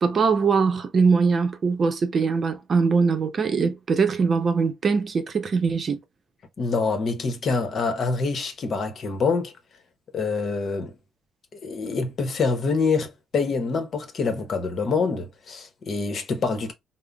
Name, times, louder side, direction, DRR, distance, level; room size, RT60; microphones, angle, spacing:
voice 1, 0.0-6.0, right 5 dB, 50° right, 0.6 m, -22 dB
voice 2, 6.6-9.5 10.1-10.9 11.6-16.7, left 4 dB, 55° left, 0.9 m, -26 dB
3.6 x 2.0 x 2.3 m
cardioid pair, 90°, 0 cm